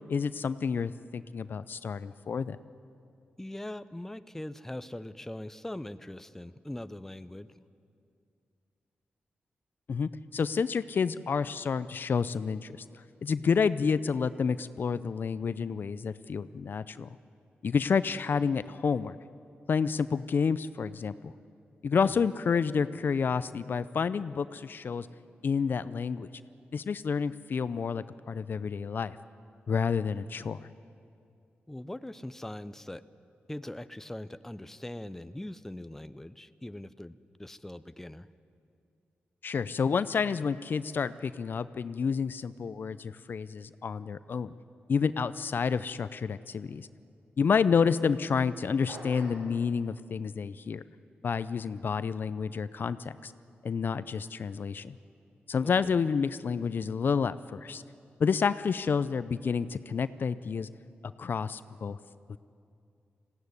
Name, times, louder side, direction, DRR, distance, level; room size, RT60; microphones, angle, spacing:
voice 1, 0.1-2.6 9.9-12.8 13.2-17.1 17.6-19.2 19.7-21.3 21.8-25.1 25.4-26.3 26.7-29.2 29.7-30.7 39.4-44.5 44.9-46.9 47.4-50.8 51.2-53.3 53.6-55.0 55.5-57.8 58.2-60.7 61.2-62.0 62.3-62.4, left 6 dB, 60° left, 15 dB, 0.5 m, -29 dB
voice 2, 3.4-7.5 22.0-22.2 31.7-33.0 33.5-38.3 55.6-55.9, left 1 dB, 10° left, 13 dB, 0.6 m, -41 dB
sound 1, 48.9-49.5, right 1 dB, 70° right, 7.5 m, -43 dB
19.5 x 16.0 x 9.7 m, 2.5 s
cardioid pair, 85°, 4 cm